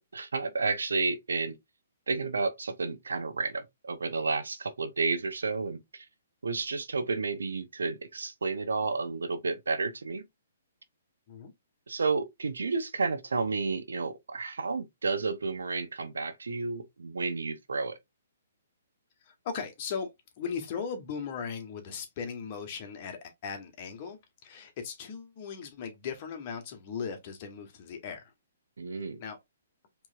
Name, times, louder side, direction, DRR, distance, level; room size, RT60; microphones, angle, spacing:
voice 1, 0.0-1.6 2.1-6.0 6.4-10.2 11.9-18.0 28.8-29.2, right 4 dB, 85° right, 0.8 m, -31 dB
voice 2, 19.2-20.1 20.4-28.3 28.9-29.4, left 6 dB, 40° left, 1.5 m, -38 dB
4.6 x 3.4 x 2.6 m
hypercardioid pair, 140°, 0 cm